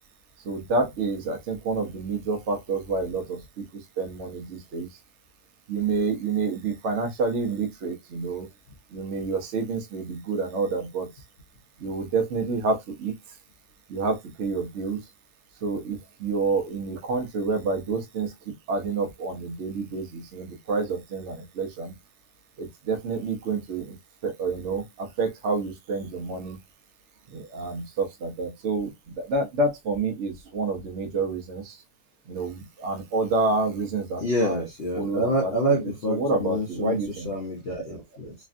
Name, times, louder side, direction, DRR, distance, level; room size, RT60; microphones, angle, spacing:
voice 1, 0.4-3.6 4.0-4.9 5.7-8.5 8.9-11.1 11.8-13.1 13.9-15.0 15.6-21.9 22.6-23.9 24.2-26.6 27.3-28.9 29.2-31.8 32.3-34.7 34.9-35.8 36.1-37.3, right 3 dB, 55° right, 0.9 m, -28 dB
voice 2, 34.2-38.3, right 1 dB, 50° left, 0.7 m, -27 dB
3.3 x 2.3 x 2.5 m
omnidirectional pair, 1.7 m